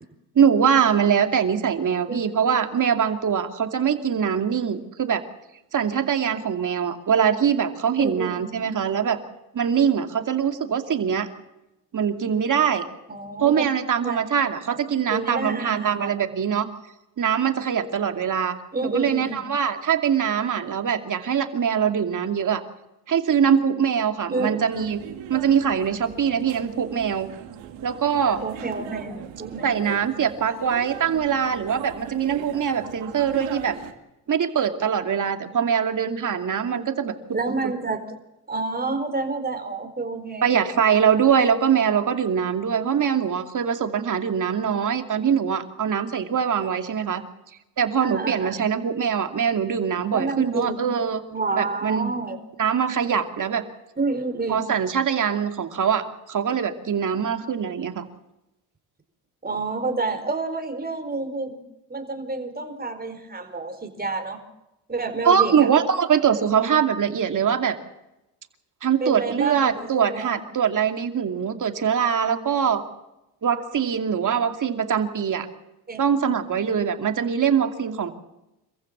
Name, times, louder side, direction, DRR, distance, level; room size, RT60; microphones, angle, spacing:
voice 1, 0.3-5.2 5.7-9.2 9.5-11.3 11.9-12.9 13.4-16.7 17.2-18.6 18.8-22.6 23.1-25.0 25.3-27.3 27.8-28.4 29.6-33.8 34.3-37.1 40.4-47.2 47.8-51.2 51.5-52.1 52.6-53.7 54.5-58.0 65.2-67.8 68.8-72.8 73.4-75.5 76.0-78.1, right 7 dB, 45° right, 6 dB, 2.6 m, -23 dB
voice 2, 8.0-8.4 13.1-13.7 14.0-14.2 14.7-14.8 15.1-16.1 18.7-19.4 24.3-24.7 28.4-30.0 37.3-38.2 38.5-40.5 48.0-48.6 50.1-50.8 51.3-52.4 54.0-54.6 59.4-61.6 61.9-64.4 64.9-65.7 69.0-70.4 74.3-74.4 75.9-76.0, right 3 dB, 20° right, 6 dB, 4.5 m, -29 dB
sound 1, 24.7-33.9, right 10 dB, 80° right, 2.4 m, -39 dB
27.0 x 15.0 x 7.4 m, 0.94 s
supercardioid pair, 70°, 42 cm